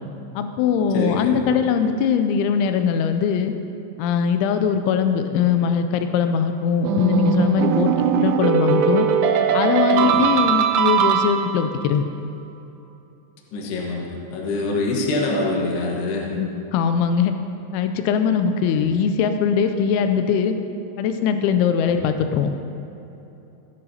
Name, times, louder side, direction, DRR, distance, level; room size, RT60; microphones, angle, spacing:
voice 1, 0.4-3.5 4.0-9.1 9.5-12.1 16.3-17.4 17.7-20.6 21.0-22.5, left 7 dB, 90° left, 8 dB, 3.0 m, -21 dB
voice 2, 0.9-1.4 9.9-10.3 13.5-16.3 18.6-18.8 21.9-22.0, left 2 dB, 70° left, -2 dB, 3.2 m, -25 dB
sound 1, 6.8-11.8, right 8 dB, 80° right, 2.5 m, -20 dB
17.5 x 11.0 x 2.8 m, 3.0 s
omnidirectional pair, 5.3 m